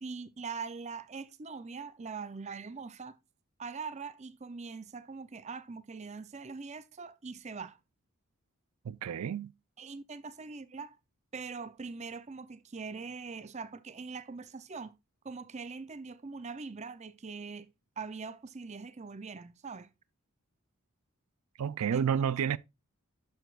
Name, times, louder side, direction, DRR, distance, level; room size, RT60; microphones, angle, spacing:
voice 1, 0.0-3.2 3.6-7.8 9.8-11.0 11.3-14.9 15.2-17.7 18.0-19.9 21.9-22.3, right 4 dB, 30° right, 0.5 m, -42 dB
voice 2, 8.8-9.5 21.6-22.6, right 8 dB, 90° right, 0.4 m, -30 dB
10.5 x 6.9 x 2.4 m
head